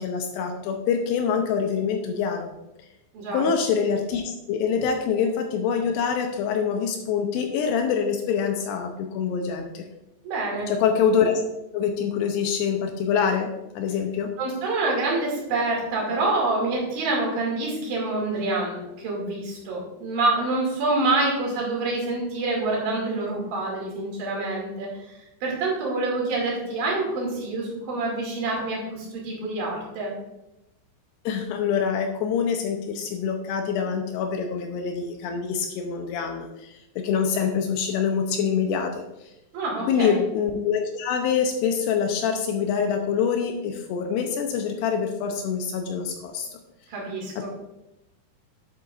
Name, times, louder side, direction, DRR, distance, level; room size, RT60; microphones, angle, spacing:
voice 1, 0.0-2.5 3.3-9.9 10.7-11.3 11.7-14.3 31.3-39.0 39.9-46.6 47.4-47.5, left 6 dB, 80° left, 4 dB, 2.5 m, -25 dB
voice 2, 3.1-3.5 10.2-10.7 14.4-30.1 39.5-40.2 46.9-47.5, right 2 dB, 55° right, -3 dB, 3.9 m, -27 dB
10.5 x 7.8 x 2.5 m, 0.93 s
omnidirectional pair, 5.3 m